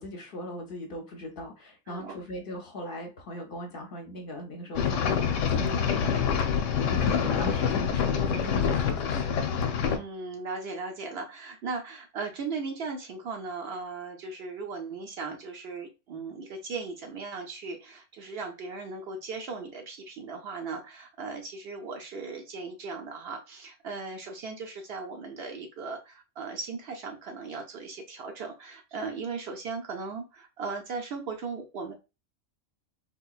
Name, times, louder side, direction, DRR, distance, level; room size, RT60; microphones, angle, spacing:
voice 1, 0.0-9.4, equal, 50° left, 2 dB, 0.9 m, -39 dB
sound 1, 4.8-10.0, left 7 dB, 85° left, 0.9 m, -26 dB
voice 2, 7.0-7.3 9.9-31.9, right 4 dB, 60° right, 4 dB, 0.8 m, -37 dB
3.8 x 2.9 x 2.3 m, 0.28 s
omnidirectional pair, 1.3 m